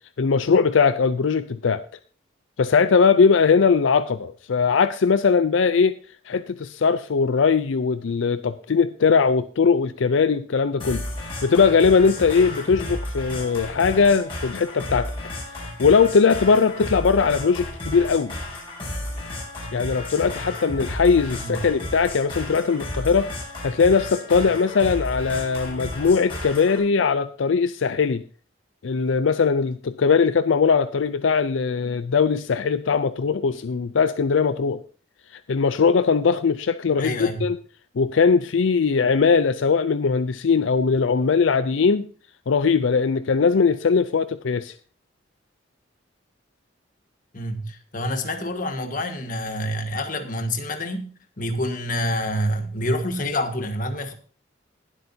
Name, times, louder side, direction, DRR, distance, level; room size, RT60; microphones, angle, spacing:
voice 1, 0.2-1.8 2.6-6.0 6.3-11.0 11.4-15.1 15.8-18.3 19.7-23.3 23.6-28.2 28.8-34.8 35.3-37.6 38.0-42.1 42.5-44.7, left 5 dB, 80° left, 0.5 m, -20 dB
sound 1, 10.8-26.8, left 1 dB, 30° left, 6.3 m, -33 dB
voice 2, 37.0-37.4 47.3-54.1, equal, 45° left, 1.5 m, -27 dB
20.0 x 8.0 x 2.7 m
head